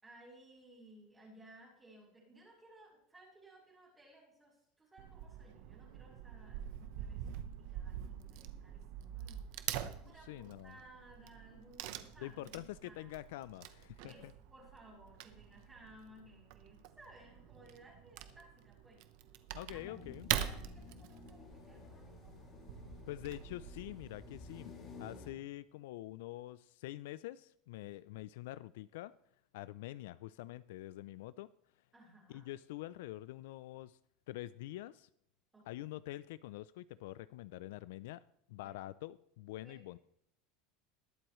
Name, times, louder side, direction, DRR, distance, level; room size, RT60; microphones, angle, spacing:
voice 1, 0.0-13.1 14.0-19.0 19.7-19.8 20.3-22.3 31.9-32.5 35.5-35.9 38.6-38.8 39.6-40.0, right 1 dB, 10° right, -6 dB, 4.3 m, -60 dB
Wood / Tearing, 5.0-24.6, right 11 dB, 60° right, 0.9 m, -45 dB
voice 2, 10.0-10.8 12.2-14.3 19.5-20.3 23.1-24.7 25.0-29.1 29.5-31.5 32.3-34.0 34.3-35.1 35.7-38.2 38.5-40.0, left 15 dB, 75° left, 17 dB, 0.4 m, -46 dB
sound 1, 19.7-25.3, left 3 dB, 30° left, 2.5 m, -53 dB
21.0 x 7.9 x 3.1 m, 0.73 s
supercardioid pair, 160°, 0 cm